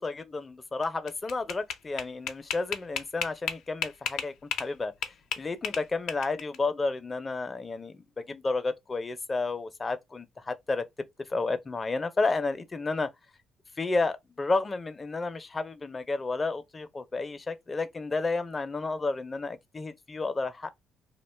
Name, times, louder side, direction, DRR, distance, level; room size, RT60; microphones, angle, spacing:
voice 1, 0.0-4.9 5.4-10.8 11.3-13.1 13.8-20.7, left 3 dB, 30° left, 0.5 m, -31 dB
sound 1, 0.8-4.7 5.0-6.6, left 8 dB, 80° left, 0.5 m, -33 dB
2.4 x 2.2 x 3.2 m
cardioid pair, 85°, 0 cm